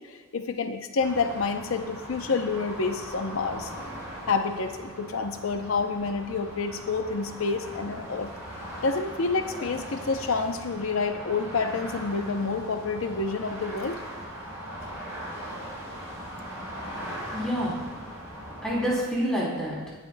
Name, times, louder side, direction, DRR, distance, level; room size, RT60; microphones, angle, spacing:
voice 1, 0.0-3.7 4.3-8.3 8.8-14.0, left 4 dB, 75° left, 7 dB, 0.6 m, -28 dB
sound 1, 1.0-19.0, equal, 15° right, 3.5 m, -39 dB
voice 2, 17.0-17.8 18.6-19.9, equal, 5° left, -6 dB, 3.0 m, -28 dB
17.5 x 8.9 x 2.2 m, 1.4 s
head